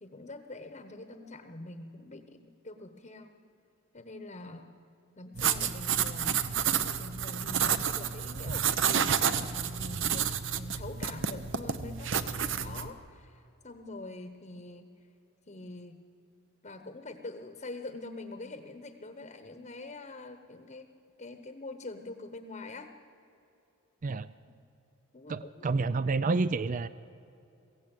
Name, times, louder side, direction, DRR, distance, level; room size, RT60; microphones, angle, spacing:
voice 1, 0.0-3.3 3.9-4.7 5.2-6.4 7.0-14.9 15.5-16.0 16.6-20.9 21.2-22.9 25.1-25.7, left 2 dB, 35° left, 7 dB, 1.0 m, -44 dB
sound 1, 5.3-12.9, right 8 dB, 60° right, 0.8 m, -30 dB
voice 2, 25.3-26.9, right 3 dB, 35° right, 15 dB, 0.4 m, -29 dB
22.5 x 16.0 x 9.0 m, 2.8 s
head